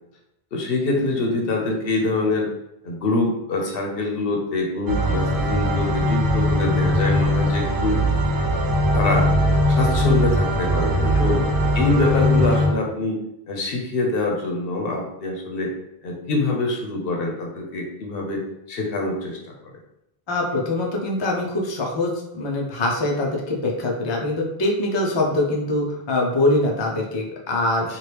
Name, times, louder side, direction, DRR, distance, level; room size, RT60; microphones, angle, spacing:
voice 1, 0.5-2.5 2.8-8.0 8.9-9.3 9.7-11.4 11.7-13.2 13.5-15.7 16.0-19.7 27.9-28.0, left 2 dB, 70° left, 1 dB, 0.9 m, -25 dB
sound 1, 4.9-12.7, equal, 85° right, 0.9 m, -20 dB
voice 2, 20.3-28.0, left 2 dB, 40° left, -1 dB, 0.4 m, -23 dB
2.9 x 2.5 x 3.3 m, 0.82 s
omnidirectional pair, 1.0 m